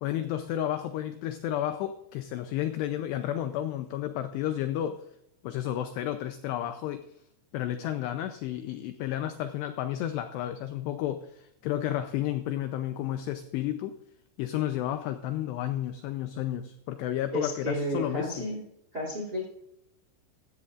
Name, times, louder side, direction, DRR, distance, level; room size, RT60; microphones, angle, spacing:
voice 1, 0.0-5.0 5.4-7.0 7.5-14.0 14.4-18.5, left 12 dB, 90° left, 8 dB, 2.4 m, -32 dB
voice 2, 17.3-18.6 18.9-19.5, equal, 25° right, 1 dB, 2.3 m, -32 dB
15.5 x 15.0 x 2.5 m, 0.80 s
omnidirectional pair, 5.7 m